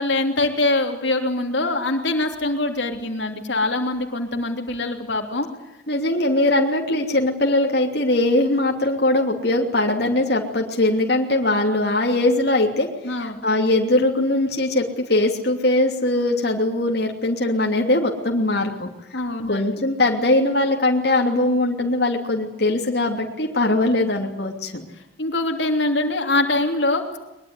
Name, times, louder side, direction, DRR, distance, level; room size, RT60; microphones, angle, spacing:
voice 1, 0.0-5.5 13.0-13.4 19.1-19.8 25.2-27.2, left 2 dB, 70° left, 4 dB, 3.1 m, -23 dB
voice 2, 5.9-12.9 13.2-18.9 19.5-24.7, left 2 dB, 55° left, 1 dB, 3.0 m, -21 dB
22.5 x 22.0 x 9.8 m, 0.91 s
head